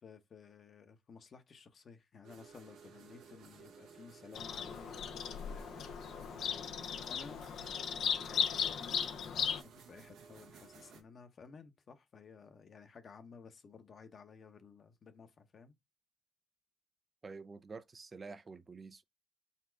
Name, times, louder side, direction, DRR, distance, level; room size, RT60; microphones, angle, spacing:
voice 1, 0.0-6.0 6.3-7.4 8.2-15.8, left 5 dB, 50° left, 0.9 m, -55 dB
sound 1, 2.2-11.0, right 6 dB, 85° right, 1.1 m, -56 dB
Bird vocalization bird call bird song, 4.4-9.6, left 8 dB, 70° left, 0.5 m, -37 dB
voice 2, 17.2-19.0, right 4 dB, 35° right, 0.4 m, -48 dB
4.2 x 2.4 x 4.4 m
cardioid pair, 90°, 0 cm